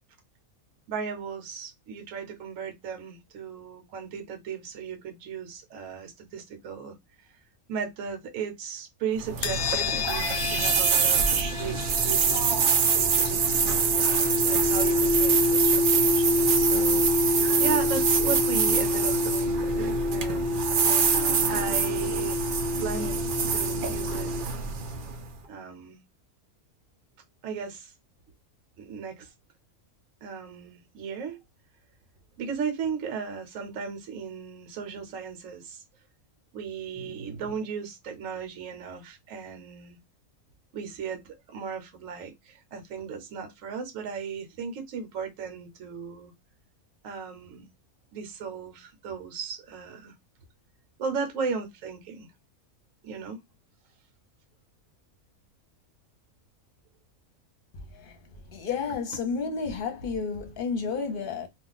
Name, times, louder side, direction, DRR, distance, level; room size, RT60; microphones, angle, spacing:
voice 1, 0.9-7.0 7.7-12.7 12.9-13.7 14.4-17.1 17.6-20.8 21.5-22.5 22.8-23.2 23.5-24.5 25.5-26.0 27.4-27.9 28.8-29.3 30.2-31.4 32.4-35.8 36.5-40.0 40.7-46.3 47.0-47.7 48.1-50.1 51.0-52.3 53.0-53.4 58.9-59.0, right 6 dB, 65° right, 1.1 m, -36 dB
sound 1, 9.2-25.3, right 6 dB, 85° right, 0.4 m, -25 dB
sound 2, 9.4-24.4, left 3 dB, 70° left, 0.6 m, -28 dB
voice 2, 58.5-61.5, left 5 dB, 45° left, 0.8 m, -31 dB
2.4 x 2.4 x 3.8 m
omnidirectional pair, 1.5 m